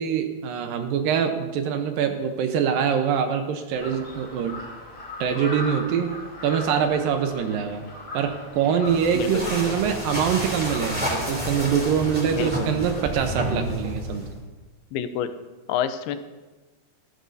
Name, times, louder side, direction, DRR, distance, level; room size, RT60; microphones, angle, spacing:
voice 1, 0.0-4.5 5.2-6.1 6.4-7.9 8.1-14.3, right 7 dB, 75° right, 6 dB, 2.4 m, -24 dB
Crow, 3.7-13.5, left 1 dB, 35° left, 3.5 m, -40 dB
sound 1, 8.8-14.4, equal, 5° right, 1.9 m, -30 dB
voice 2, 9.1-9.8 12.4-12.7 14.9-15.3 15.7-16.2, left 9 dB, 85° left, 10 dB, 2.6 m, -28 dB
20.0 x 12.5 x 2.7 m, 1.2 s
omnidirectional pair, 4.4 m